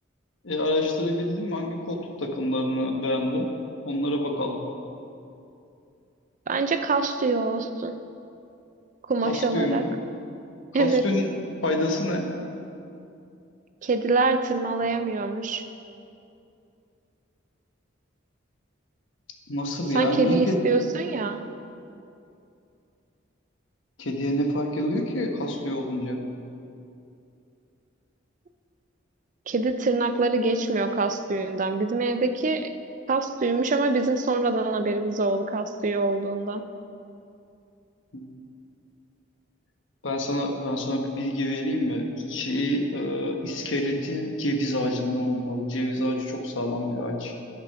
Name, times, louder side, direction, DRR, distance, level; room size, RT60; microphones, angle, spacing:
voice 1, 0.4-3.5 3.8-4.6 9.2-9.9 10.8-12.3 19.5-20.8 24.0-26.2 38.1-38.3 40.0-47.3, left 1 dB, 75° left, 3 dB, 1.2 m, -27 dB
voice 2, 6.5-7.9 9.1-9.8 10.7-11.0 13.8-15.6 19.9-21.4 29.5-32.7 33.1-36.6, right 3 dB, 40° right, 9 dB, 0.5 m, -25 dB
12.0 x 6.0 x 5.7 m, 2.6 s
head